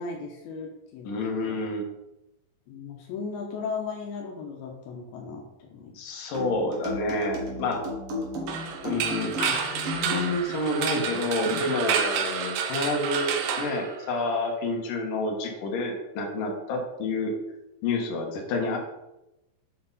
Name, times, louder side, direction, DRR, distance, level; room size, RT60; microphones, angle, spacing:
voice 1, 0.0-1.1 1.4-1.6 2.7-6.0, left 5 dB, 85° left, 1 dB, 2.8 m, -36 dB
voice 2, 1.0-1.8 6.0-7.8 8.8-17.3 17.8-18.8, left 2 dB, 70° left, 0 dB, 2.9 m, -29 dB
sound 1, 6.3-10.6, left 1 dB, 60° right, 1.7 m, -35 dB
sound 2, 8.5-14.5, right 7 dB, 75° right, 2.2 m, -30 dB
7.9 x 5.5 x 4.1 m, 0.92 s
omnidirectional pair, 4.2 m